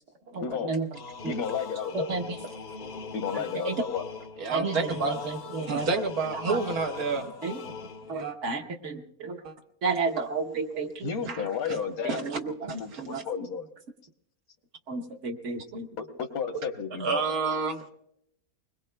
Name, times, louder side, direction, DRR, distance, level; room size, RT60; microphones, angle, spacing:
voice 1, 0.4-0.7 1.2-2.1 3.1-4.1 11.0-12.2 12.6-13.7 16.0-17.2, left 6 dB, 80° left, 1.6 m, -32 dB
sound 1, 0.9-8.3, left 5 dB, 50° left, 0.6 m, -41 dB
voice 2, 1.9-2.4 3.6-3.7 4.5-5.9 6.3-6.6 7.4-7.6 8.1-9.4 9.8-11.1 12.0-13.2 14.9-15.9, right 4 dB, 55° right, 1.3 m, -32 dB
voice 3, 4.4-5.3 5.7-7.3 8.1-8.4 9.4-9.5 11.2-11.4 11.7-11.8 12.1-12.2 12.9-13.0 17.0-17.8, right 4 dB, 80° right, 1.7 m, -29 dB
30.0 x 21.0 x 2.2 m
omnidirectional pair, 1.5 m